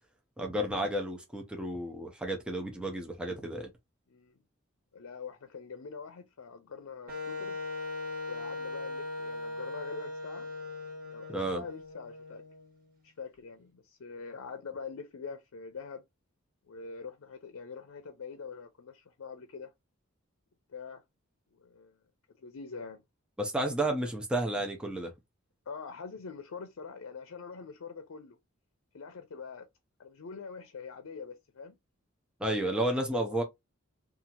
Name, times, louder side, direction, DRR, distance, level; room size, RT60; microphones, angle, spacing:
voice 1, 0.4-3.7 11.3-11.6 23.4-25.1 32.4-33.4, right 1 dB, 5° right, 0.5 m, -32 dB
voice 2, 4.9-7.6 8.3-10.5 11.0-12.4 13.0-16.0 16.7-19.7 20.7-21.0 21.5-22.0 22.4-23.0 25.7-28.4 28.9-29.7 30.0-31.8 32.7-33.4, left 5 dB, 85° left, 0.5 m, -44 dB
Wind instrument woodwind instrument, 7.1-12.9, left 2 dB, 45° right, 1.1 m, -39 dB
2.7 x 2.4 x 2.8 m
head